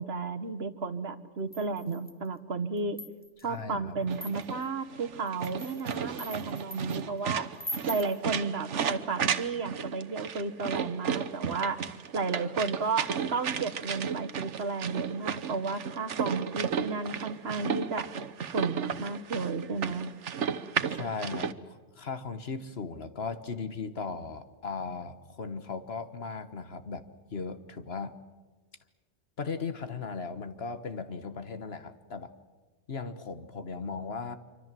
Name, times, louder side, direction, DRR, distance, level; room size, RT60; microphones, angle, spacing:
voice 1, 0.0-3.0 3.4-7.5 7.9-11.8 12.1-18.0 18.5-20.1, right 4 dB, 60° right, 9 dB, 1.5 m, -33 dB
sound 1, 1.5-2.3 2.8-3.5 4.1-4.7 5.3-7.0 7.6-8.2, equal, 10° left, 1.2 m, -41 dB
voice 2, 3.4-4.1 20.9-27.0 27.3-28.1 29.4-32.3 32.9-34.4, left 4 dB, 60° left, 11 dB, 1.6 m, -37 dB
sound 2, 4.1-21.5, right 7 dB, 80° right, 1.3 m, -34 dB
26.0 x 25.0 x 7.6 m, 1.3 s
omnidirectional pair, 1.2 m